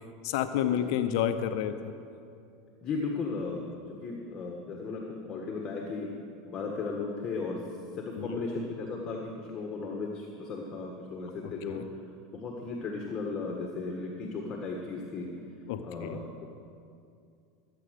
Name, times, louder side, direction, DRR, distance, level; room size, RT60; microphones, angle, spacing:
voice 1, 0.2-1.9 8.2-8.4 11.7-11.8 15.7-16.2, left 9 dB, 70° left, 9 dB, 0.8 m, -30 dB
voice 2, 2.8-3.6 3.9-6.1 6.5-7.6 7.9-11.8 12.3-15.3 15.8-16.5, left 4 dB, 30° left, 0 dB, 1.6 m, -36 dB
14.0 x 8.5 x 6.6 m, 2.5 s
supercardioid pair, 115°, 2 cm